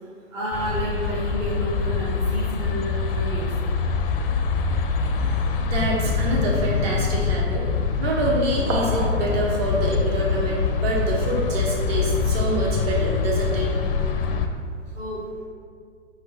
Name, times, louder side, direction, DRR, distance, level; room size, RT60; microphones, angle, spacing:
voice 1, 0.3-3.5 6.1-6.2 14.9-15.2, right 1 dB, 15° right, -7 dB, 0.4 m, -30 dB
sound 1, 0.5-14.5, left 5 dB, 50° left, 0.4 m, -24 dB
sound 2, 4.2-5.0 5.5-5.8 6.7-6.8 8.5-9.8, right 2 dB, 85° right, 1.0 m, -33 dB
voice 2, 5.3-7.6 8.0-13.7, right 2 dB, 55° right, -4 dB, 1.4 m, -26 dB
4.5 x 3.2 x 3.3 m, 2.1 s
hypercardioid pair, 130°, 36 cm